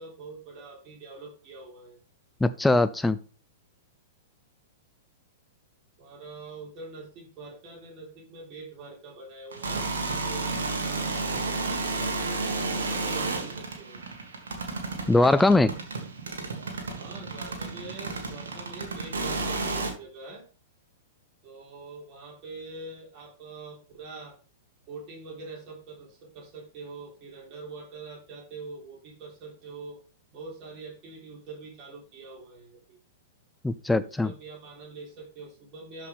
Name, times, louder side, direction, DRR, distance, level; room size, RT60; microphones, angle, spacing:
voice 1, 0.0-2.0 6.0-12.3 12.7-14.0 17.0-20.5 21.4-24.4 24.8-30.0 30.3-33.0 33.9-36.1, right 3 dB, 35° right, 3.8 m, -44 dB
voice 2, 2.4-3.2 15.1-15.7 33.6-34.3, left 2 dB, 5° left, 0.3 m, -21 dB
sound 1, 9.5-19.9, right 3 dB, 65° right, 2.0 m, -32 dB
12.5 x 5.2 x 3.6 m
figure-of-eight pair, 105°, 0 cm